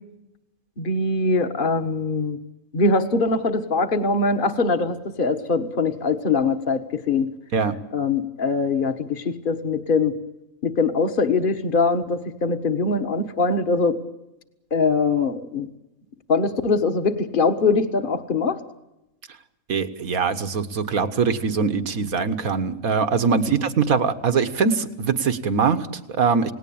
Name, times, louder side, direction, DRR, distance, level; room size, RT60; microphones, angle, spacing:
voice 1, 0.8-2.4 2.7-7.3 7.9-10.1 10.6-14.0 14.7-15.7 16.3-18.6, left 4 dB, 40° left, 7 dB, 1.7 m, -22 dB
voice 2, 19.7-26.5, right 5 dB, 85° right, 10 dB, 1.9 m, -22 dB
29.0 x 18.5 x 8.8 m, 0.94 s
omnidirectional pair, 1.4 m